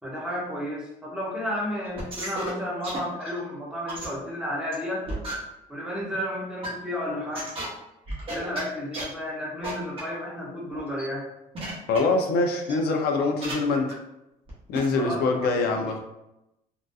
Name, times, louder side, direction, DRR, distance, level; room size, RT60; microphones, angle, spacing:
voice 1, 0.0-5.1 5.7-7.5 8.3-11.3 14.9-15.5, left 1 dB, 5° right, -6 dB, 1.1 m, -32 dB
sound 1, 1.9-2.5 2.8-3.4 3.9-4.1 4.7-4.8 5.1-5.3 6.1-6.2 6.6-6.7 7.3-7.7 8.1-8.6 8.9-9.0 9.6-9.7 10.0-10.1 10.7-11.0 11.5-12.0 12.6-12.7 13.4-13.5 13.9-14.0 14.5-14.6 14.7-14.9, right 2 dB, 35° right, 1.1 m, -34 dB
voice 2, 11.9-13.9 14.7-16.0, left 3 dB, 85° left, 3 dB, 0.5 m, -24 dB
3.7 x 2.3 x 2.6 m, 0.89 s
cardioid pair, 140°, 16 cm